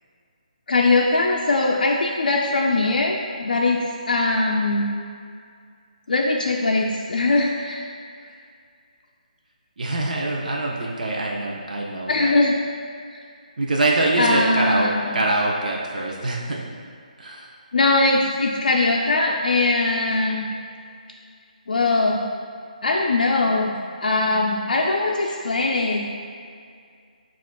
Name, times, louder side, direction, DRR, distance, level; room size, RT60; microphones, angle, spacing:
voice 1, 0.7-4.8 6.1-7.9 12.1-12.5 13.1-13.2 14.2-15.2 17.7-20.5 21.7-22.2 22.8-23.7 24.0-26.1, left 2 dB, 75° left, -1 dB, 0.4 m, -21 dB
voice 2, 9.8-12.4 13.6-16.6 17.2-17.5 25.2-25.3, right 2 dB, 65° right, -2 dB, 0.5 m, -24 dB
7.1 x 2.4 x 2.2 m, 2.2 s
hypercardioid pair, 165°, 5 cm